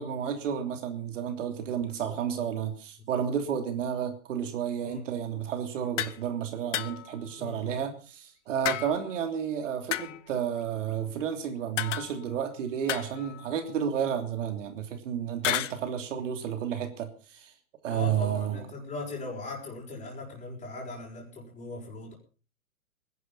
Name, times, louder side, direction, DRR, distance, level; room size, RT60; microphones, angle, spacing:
voice 1, 0.0-17.5 17.8-18.6, right 8 dB, 60° right, 6 dB, 3.2 m, -31 dB
sound 1, 6.0-6.2 6.7-7.2 8.6-9.2 9.9-10.4 11.8-12.4 12.9-13.6 15.4-15.8, left 12 dB, 55° left, 1.2 m, -32 dB
voice 2, 7.4-7.8 17.9-22.1, left 3 dB, 15° left, -3 dB, 6.1 m, -39 dB
21.0 x 11.0 x 5.6 m, 0.38 s
hypercardioid pair, 120°, 43 cm